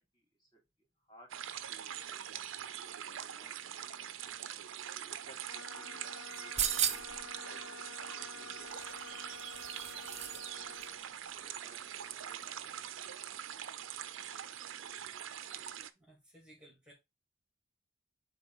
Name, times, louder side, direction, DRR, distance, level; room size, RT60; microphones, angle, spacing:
voice 1, 0.1-0.6 1.1-3.0 3.2-3.6 4.0-4.5 4.9-7.6 8.1-8.9 11.4-13.0, right 1 dB, 20° left, 2.8 m, -62 dB
sound 1, 1.3-15.9, right 10 dB, 85° right, 0.5 m, -43 dB
sound 2, 5.5-11.0, left 5 dB, 80° left, 0.6 m, -50 dB
sound 3, 6.3-7.2 8.7-10.5 10.8-10.9, right 10 dB, 35° right, 0.7 m, -36 dB
voice 2, 16.0-16.9, right 1 dB, 5° right, 2.0 m, -59 dB
6.9 x 3.8 x 3.8 m
head